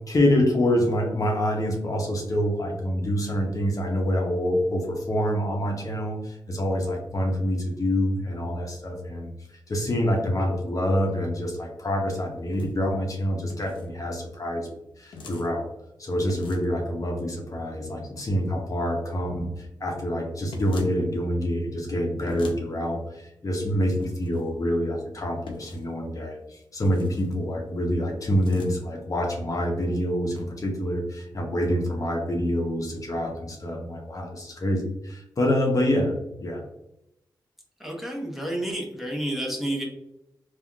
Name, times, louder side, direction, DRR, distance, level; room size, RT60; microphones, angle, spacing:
voice 1, 0.1-9.3 9.7-14.7 15.0-15.7 16.0-36.6, equal, 45° left, 0 dB, 0.7 m, -26 dB
sound 1, 12.4-12.7 13.5-13.9 15.1-15.5 16.3-16.8 20.5-21.0 22.3-22.6 24.0-24.4 25.5-25.9 26.8-27.3 28.3-28.7, left 3 dB, 90° left, 0.5 m, -40 dB
voice 2, 37.8-39.8, right 1 dB, 5° right, -1 dB, 0.9 m, -30 dB
3.5 x 2.3 x 2.2 m, 0.86 s
cardioid pair, 60°, 8 cm